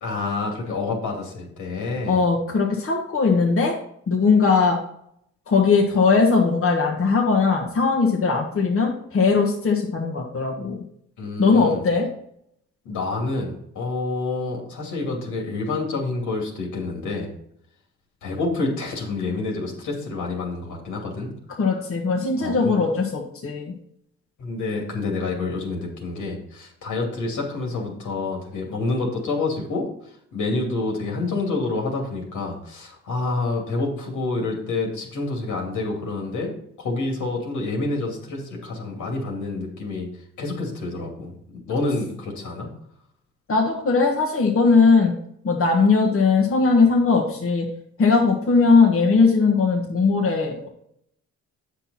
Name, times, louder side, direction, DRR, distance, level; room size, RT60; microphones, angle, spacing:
voice 1, 0.0-2.2 11.2-11.8 12.8-17.3 18.2-21.3 22.4-22.8 24.4-36.5 36.8-40.1 40.4-41.4 41.7-42.7, left 3 dB, 75° left, 1 dB, 2.6 m, -28 dB
voice 2, 2.1-3.7 4.1-4.8 5.5-10.8 11.4-12.1 21.6-23.7 43.5-45.1 45.4-47.6 48.0-50.7, left 4 dB, 45° left, -1 dB, 1.6 m, -19 dB
8.1 x 6.1 x 4.2 m, 0.72 s
cardioid pair, 90°, 30 cm